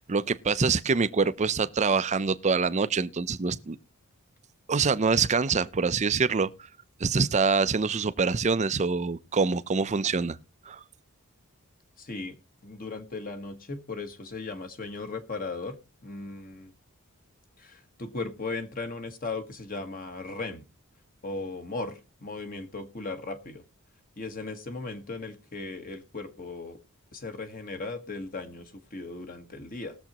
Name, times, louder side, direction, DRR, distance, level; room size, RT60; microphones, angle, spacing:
voice 1, 0.1-3.8 4.7-6.5 7.0-10.4 10.7-10.8, right 4 dB, 30° right, 0.5 m, -25 dB
voice 2, 12.0-12.4 12.6-16.7 17.6-20.6 21.2-23.6 24.2-26.8 27.1-30.0, left 3 dB, 40° left, 1.3 m, -37 dB
20.0 x 7.1 x 2.9 m
head